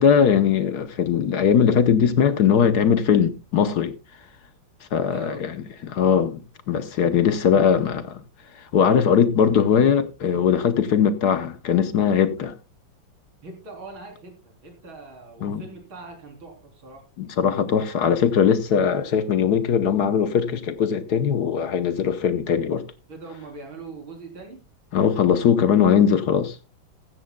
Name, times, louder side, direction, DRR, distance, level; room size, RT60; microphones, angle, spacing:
voice 1, 0.0-3.9 4.9-5.6 5.8-6.4 6.7-8.2 8.7-12.5 15.4-15.6 17.2-22.8 24.9-26.6, left 7 dB, 60° left, 1.3 m, -20 dB
voice 2, 5.1-5.4 13.4-17.0 23.1-24.6, right 3 dB, 90° right, 4.5 m, -41 dB
14.0 x 14.0 x 2.3 m
omnidirectional pair, 2.1 m